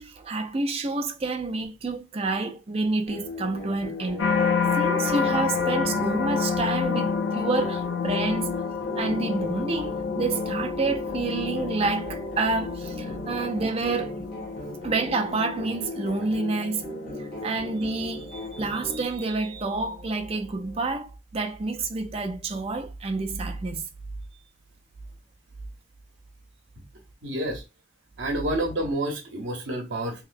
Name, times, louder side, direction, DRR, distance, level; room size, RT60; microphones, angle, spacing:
voice 1, 0.0-4.3 4.7-8.5 8.9-14.3 14.8-16.9 17.2-23.9, right 3 dB, 30° right, 0.4 m, -28 dB
sound 1, 3.1-19.1, left 1 dB, 50° left, 1.0 m, -38 dB
sound 2, 4.2-19.4 19.9-20.3, left 5 dB, 70° left, 0.4 m, -29 dB
voice 2, 27.2-27.6 28.2-30.2, right 1 dB, 70° right, 0.7 m, -29 dB
2.9 x 2.9 x 2.5 m
head